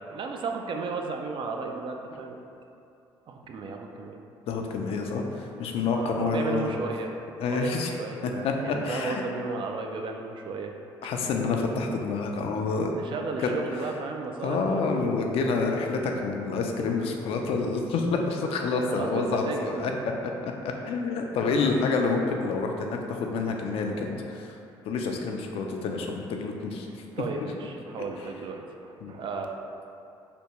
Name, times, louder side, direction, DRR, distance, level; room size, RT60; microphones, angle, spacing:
voice 1, 0.0-2.4 3.3-4.2 5.9-7.1 7.5-10.7 12.9-14.8 18.9-19.9 27.1-29.5, right 4 dB, 50° right, 2 dB, 0.4 m, -34 dB
voice 2, 4.5-6.7 7.4-7.9 8.2-9.2 11.0-12.9 13.4-13.5 14.4-19.9 20.2-24.5 24.9-26.9 29.0-29.1, left 4 dB, 65° left, 2 dB, 0.4 m, -28 dB
3.4 x 2.6 x 2.9 m, 2.7 s
supercardioid pair, 65°, 10 cm